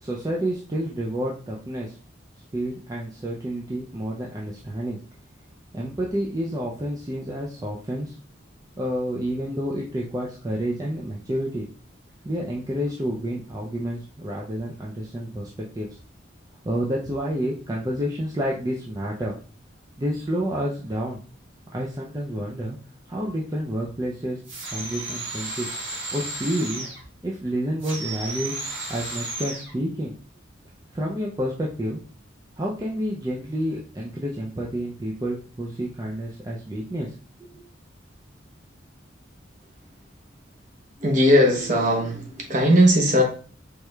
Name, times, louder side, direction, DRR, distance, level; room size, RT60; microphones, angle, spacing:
voice 1, 0.0-2.0 2.5-5.0 5.7-8.2 8.8-11.7 12.2-16.0 16.6-19.4 20.0-21.2 21.7-22.8 23.1-24.4 24.7-25.7 26.1-26.9 27.2-28.5 28.9-30.1 30.9-32.0 32.6-37.1 37.4-37.7, equal, 20° right, -3 dB, 0.4 m, -29 dB
sound 1, 24.4-27.0 27.8-29.7, right 2 dB, 80° right, 1.3 m, -33 dB
voice 2, 41.0-43.2, equal, 40° right, 1 dB, 0.9 m, -18 dB
4.6 x 3.3 x 2.3 m, 0.40 s
head